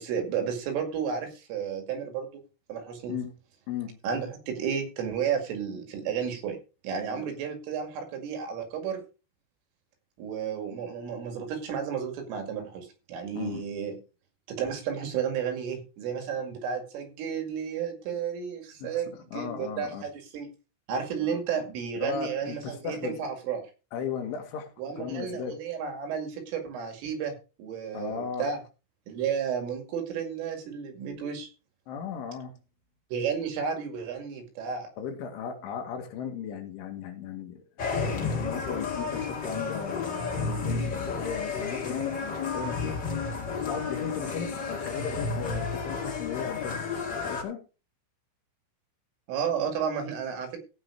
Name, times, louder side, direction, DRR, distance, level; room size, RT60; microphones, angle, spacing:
voice 1, 0.0-2.3 2.7-3.1 4.0-6.6 6.8-9.0 10.2-14.0 14.5-20.5 20.9-23.6 24.8-27.3 27.6-28.6 29.1-31.5 33.1-34.9 49.3-50.6, right 7 dB, 75° right, 6 dB, 4.7 m, -32 dB
voice 2, 3.7-4.0 7.2-7.3 13.3-13.6 18.8-20.1 21.2-21.4 22.0-23.2 23.9-25.6 27.9-28.5 31.9-32.6 35.0-37.6 38.0-43.0 43.6-46.8 47.2-47.6, left 7 dB, 70° left, 4 dB, 4.1 m, -36 dB
sound 1, 37.8-47.4, left 4 dB, 50° left, 1.3 m, -32 dB
15.5 x 5.8 x 4.8 m, 0.32 s
omnidirectional pair, 5.8 m